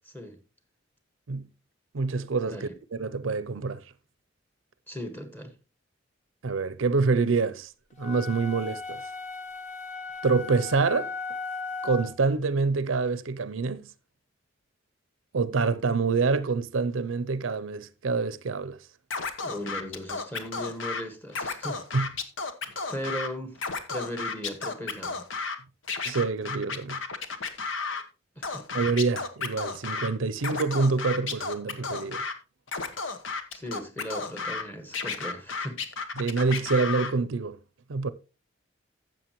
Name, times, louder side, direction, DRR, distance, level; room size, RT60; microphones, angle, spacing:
voice 1, 1.9-3.8 6.4-7.7 8.0-9.0 10.2-11.1 11.8-13.9 15.3-18.8 21.9-22.1 26.0-27.0 28.7-32.2 36.2-37.6 37.9-38.1, right 4 dB, 80° right, 0.6 m, -26 dB
voice 2, 4.9-5.5 19.4-21.8 22.9-23.6 23.9-25.3 28.3-28.7 33.5-35.8, equal, 10° left, 1.6 m, -37 dB
sound 1, 8.0-12.2, left 4 dB, 40° left, 1.2 m, -37 dB
Scratching (performance technique), 19.1-21.0 21.3-23.3 23.6-25.6 25.9-28.0 28.4-30.1 30.4-32.3 32.7-34.6 34.9-37.1, left 4 dB, 70° left, 1.2 m, -32 dB
12.5 x 7.7 x 3.0 m
head